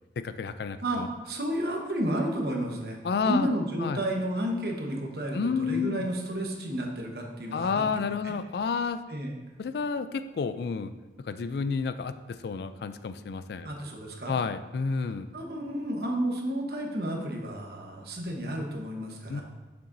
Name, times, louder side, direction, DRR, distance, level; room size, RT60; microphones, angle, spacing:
voice 1, 0.2-1.1 3.0-3.5 3.8-4.0 5.3-6.1 7.5-9.0 9.6-10.9 11.3-12.1 12.4-13.7 14.3-15.3 19.3-19.4, left 5 dB, 65° left, 11 dB, 0.3 m, -30 dB
voice 2, 0.8-3.0 3.2-7.8 8.2-8.3 9.1-9.4 13.6-14.3 15.1-19.4, right 1 dB, 60° right, 1 dB, 1.1 m, -31 dB
8.7 x 6.9 x 2.6 m, 1.2 s
head